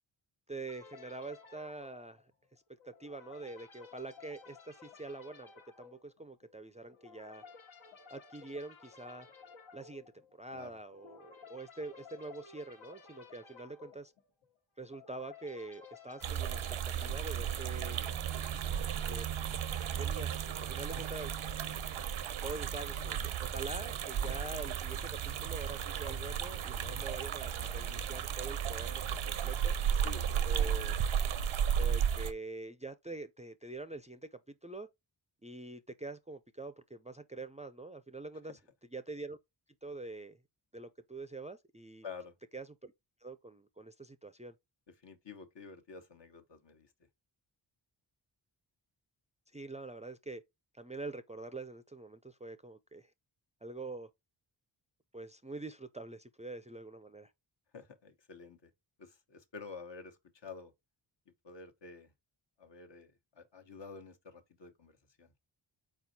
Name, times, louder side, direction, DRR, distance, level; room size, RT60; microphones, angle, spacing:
voice 1, 0.5-2.2 2.8-5.5 5.8-7.4 8.1-9.3 9.7-10.0 10.3-14.1 14.8-18.0 19.1-19.2 19.9-21.3 21.7-21.8 22.4-29.8 30.5-30.9 31.7-34.9 35.4-38.6 38.9-39.4 39.8-40.4 40.7-42.1 42.5-42.9 43.2-44.5 49.5-50.4 50.7-53.1 53.6-54.1 55.1-57.3, right 2 dB, 15° right, 0.4 m, -45 dB
sound 1, 0.7-17.9, left 5 dB, 80° left, 1.4 m, -56 dB
sound 2, 16.2-32.3, right 8 dB, 85° right, 0.7 m, -34 dB
voice 2, 18.3-19.1 29.9-30.7 38.5-38.6 42.0-42.4 44.9-46.9 57.7-58.7 59.0-60.7 61.4-62.1 62.6-65.3, left 5 dB, 65° left, 1.1 m, -50 dB
4.3 x 4.3 x 2.7 m
cardioid pair, 60°, 47 cm